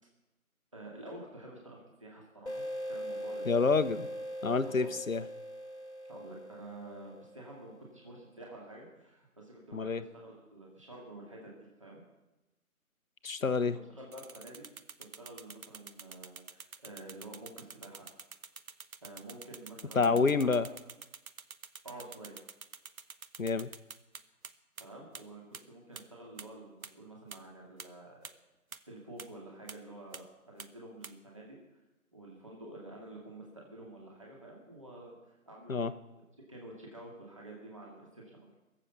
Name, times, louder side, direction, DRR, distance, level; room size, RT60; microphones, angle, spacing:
voice 1, 0.7-3.4 3.7-3.8 4.6-4.9 6.1-11.5 11.8-12.0 13.9-14.6 15.0-18.1 19.0-20.5 21.8-22.4 24.8-28.3 28.9-31.6 32.1-36.0 36.5-38.5, right 2 dB, 20° right, -2 dB, 2.2 m, -49 dB
sound 1, 2.5-7.8, equal, 50° left, 1.5 m, -41 dB
voice 2, 3.4-4.1 4.4-5.3 9.7-10.0 13.2-13.8 19.9-20.7 23.4-23.7 35.7-35.9, left 4 dB, 65° left, 12 dB, 1.0 m, -28 dB
sound 2, 14.1-24.5 24.8-24.9 25.1-25.2 25.5-25.6 26.0-26.1 26.4-26.5 26.8-26.9 27.3-27.4 27.8-27.9 28.2-28.3 28.7-28.8 29.2-29.3 29.7-29.8 30.1-30.2 30.6-30.7 31.0-31.1, right 5 dB, 70° right, 1.0 m, -46 dB
22.0 x 7.6 x 7.0 m, 1.0 s
figure-of-eight pair, 180°, 44 cm